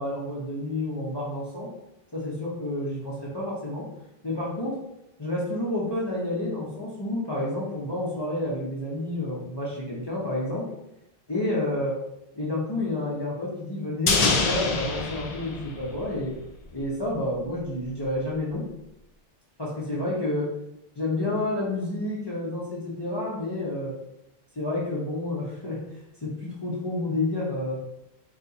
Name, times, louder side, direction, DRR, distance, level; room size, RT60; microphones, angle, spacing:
voice 1, 0.0-1.7 2.1-3.8 4.2-4.7 5.2-10.6 11.3-11.9 12.3-16.3 16.7-18.6 19.6-20.5 21.0-23.9 24.5-25.8 26.2-27.8, left 1 dB, 25° left, -7 dB, 0.9 m, -29 dB
sound 1, 14.1-16.5 16.7-16.8, left 3 dB, 50° left, 0.6 m, -26 dB
4.2 x 2.4 x 4.0 m, 0.85 s
omnidirectional pair, 1.0 m